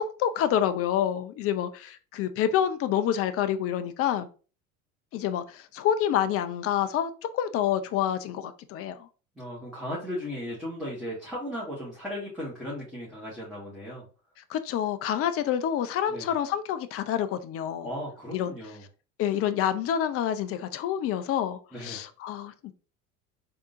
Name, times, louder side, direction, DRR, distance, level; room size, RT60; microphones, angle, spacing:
voice 1, 0.2-4.3 5.1-9.1 14.5-17.9 18.3-18.5 19.2-22.7, left 10 dB, 35° left, 0.4 m, -28 dB
voice 2, 9.3-14.1 16.1-16.3 17.8-18.8 21.7-22.0, equal, ahead, 1.5 m, -36 dB
3.5 x 2.7 x 2.5 m
hypercardioid pair, 75°, 43 cm